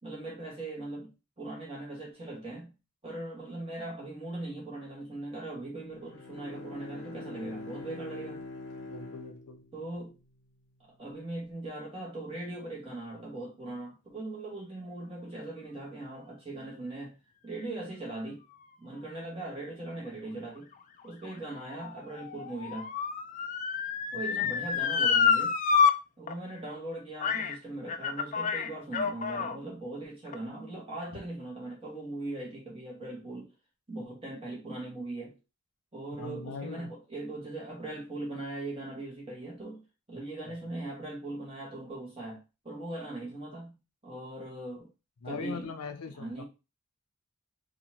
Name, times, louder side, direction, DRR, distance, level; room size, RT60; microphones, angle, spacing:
voice 1, 0.0-2.7 3.0-8.4 9.7-10.2 10.8-17.1 17.4-18.4 18.8-20.7 21.0-22.9 24.1-25.6 26.2-33.5 33.9-35.4 35.9-39.8 40.1-43.8 44.0-44.9 45.2-45.7 46.1-46.4, right 2 dB, 25° right, 1.6 m, -40 dB
Bowed string instrument, 5.8-10.2, left 3 dB, 55° left, 0.7 m, -44 dB
voice 2, 8.9-9.6 24.4-24.6 36.2-36.9 40.4-40.6 45.2-46.4, left 4 dB, 90° left, 0.6 m, -40 dB
Motor vehicle (road) / Siren, 20.7-25.9 26.3-26.4 27.2-27.5 27.9-29.6 30.3-30.4, left 6 dB, 35° left, 0.4 m, -28 dB
4.1 x 2.7 x 2.9 m
head